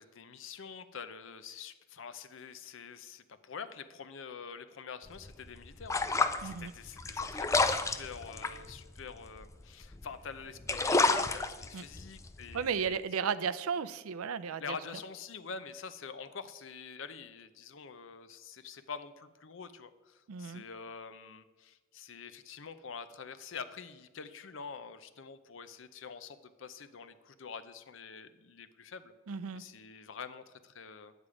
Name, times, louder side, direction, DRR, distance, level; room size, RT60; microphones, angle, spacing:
voice 1, 0.0-13.0 14.6-29.1 29.5-31.1, left 5 dB, 60° left, 12 dB, 0.6 m, -46 dB
sound 1, 5.1-10.1 10.5-12.9, left 3 dB, 15° left, 0.3 m, -31 dB
voice 2, 6.4-6.7 11.7-11.8 12.5-14.6 20.3-20.6 29.3-29.6, right 6 dB, 85° right, 14 dB, 0.5 m, -34 dB
10.0 x 8.1 x 4.9 m, 1.3 s
head